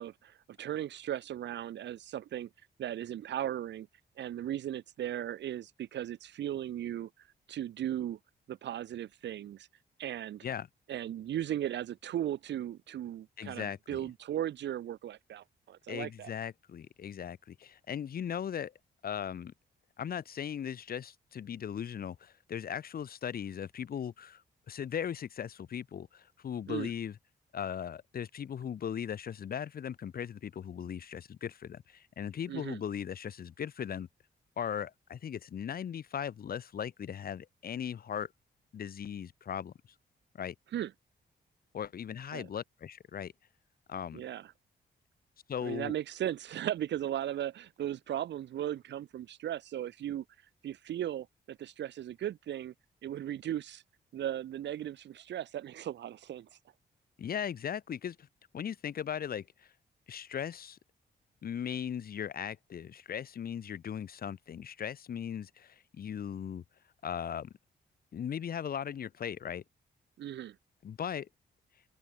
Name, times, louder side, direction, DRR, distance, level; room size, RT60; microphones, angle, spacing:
voice 1, 0.0-2.5 2.8-3.9 4.2-7.1 7.5-8.2 8.5-9.7 10.0-10.4 10.9-16.3 26.7-26.9 32.5-32.8 40.7-40.9 42.3-42.5 44.1-44.5 45.6-50.2 50.6-52.7 53.0-53.8 54.1-56.5 70.2-70.5, right 11 dB, 85° right, 1.3 m, -37 dB
voice 2, 13.4-14.0 15.9-18.7 19.0-19.5 20.0-24.4 24.7-27.2 27.5-34.1 34.6-38.3 38.7-39.7 40.3-40.6 41.7-43.3 43.9-44.2 45.5-45.9 57.2-58.3 58.5-59.7 60.1-60.8 61.4-66.6 67.0-67.5 68.1-69.6 70.8-71.3, left 8 dB, 55° left, 1.9 m, -38 dB
wide cardioid pair, 145°, 18 cm